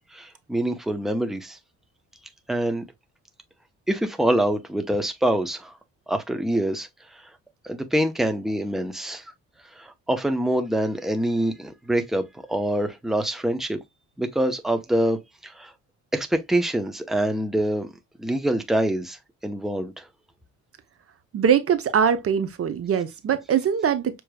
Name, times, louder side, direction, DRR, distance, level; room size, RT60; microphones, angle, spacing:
voice 1, 0.1-1.6 2.5-2.8 3.9-5.8 6.1-7.3 7.6-9.3 9.7-13.8 14.2-15.7 16.1-17.9 18.2-20.1, right 1 dB, ahead, 0.8 m, -25 dB
voice 2, 21.3-24.2, right 7 dB, 50° right, 0.8 m, -22 dB
6.5 x 3.0 x 2.2 m
cardioid pair, 90°, 30 cm